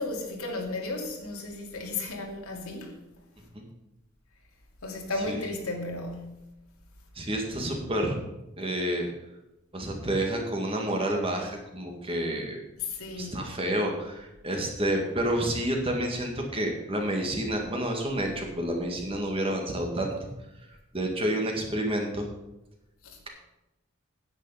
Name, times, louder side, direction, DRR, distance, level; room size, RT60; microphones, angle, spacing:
voice 1, 0.0-3.0 4.8-6.4 12.8-13.5 23.0-23.2, left 2 dB, 85° left, 2.5 m, -34 dB
voice 2, 7.2-8.2 8.6-9.1 9.7-12.6 13.1-20.1 20.9-22.3, right 1 dB, 25° right, 1.9 m, -29 dB
10.0 x 8.7 x 5.7 m
head